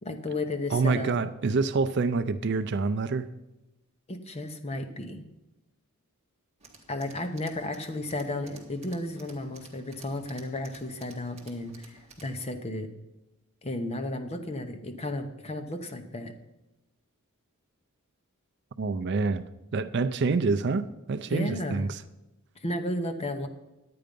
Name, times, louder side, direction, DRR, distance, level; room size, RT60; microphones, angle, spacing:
voice 1, 0.0-1.2 4.1-5.2 6.9-12.9 13.6-16.3 21.3-21.9 22.6-23.5, left 1 dB, 30° left, 0.8 m, -33 dB
voice 2, 0.7-3.3 18.8-19.4 19.7-22.0, right 4 dB, 50° right, 0.4 m, -27 dB
Tools, 6.6-12.4, right 3 dB, 30° right, 1.5 m, -54 dB
10.5 x 8.6 x 5.2 m
head